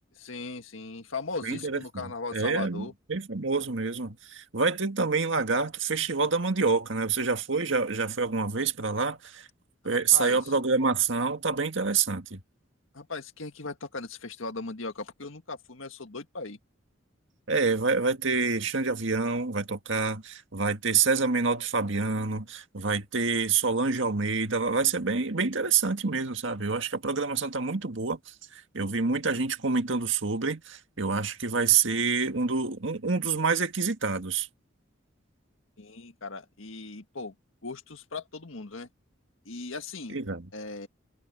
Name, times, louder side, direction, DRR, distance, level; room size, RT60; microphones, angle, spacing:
voice 1, 0.2-2.9 9.9-10.5 12.9-16.6 35.8-37.3 37.6-38.9 39.5-40.2 40.5-40.9, left 3 dB, 80° left, 1.8 m, -38 dB
voice 2, 1.4-9.5 9.8-12.4 17.5-34.5 40.1-40.5, right 4 dB, 70° right, 1.8 m, -27 dB
head